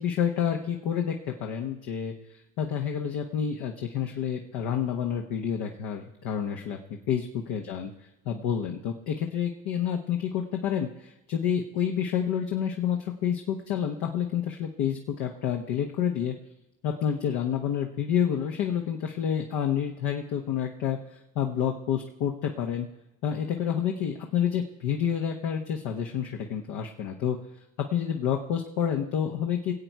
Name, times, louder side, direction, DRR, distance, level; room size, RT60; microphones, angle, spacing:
voice 1, 0.0-2.1 2.6-7.9 8.2-16.3 16.8-22.9 23.2-27.4 27.8-29.7, left 8 dB, 70° left, 2 dB, 1.2 m, -29 dB
21.0 x 8.2 x 4.7 m, 0.95 s
hypercardioid pair, 60°, 38 cm